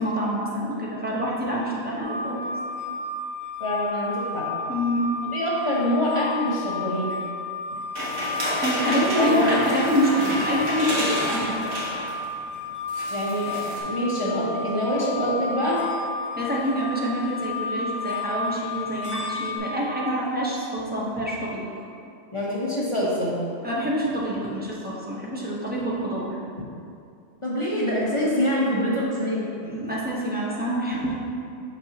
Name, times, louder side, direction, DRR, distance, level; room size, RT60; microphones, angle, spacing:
voice 1, 0.0-2.4 4.7-5.1 8.6-11.7 16.3-21.7 23.6-26.4 29.6-31.1, equal, 10° right, -6 dB, 0.8 m, -26 dB
sound 1, 2.0-19.6, left 3 dB, 35° right, 1.7 m, -32 dB
voice 2, 3.6-4.5 5.3-7.1 9.2-9.6 13.1-15.8 22.3-23.4 27.4-29.5, equal, 25° left, -6 dB, 0.9 m, -25 dB
sound 2, 8.0-12.2 12.5-12.6 12.9-13.8, equal, 70° right, 1.6 m, -29 dB
6.1 x 6.0 x 2.9 m, 2.4 s
omnidirectional pair, 1.4 m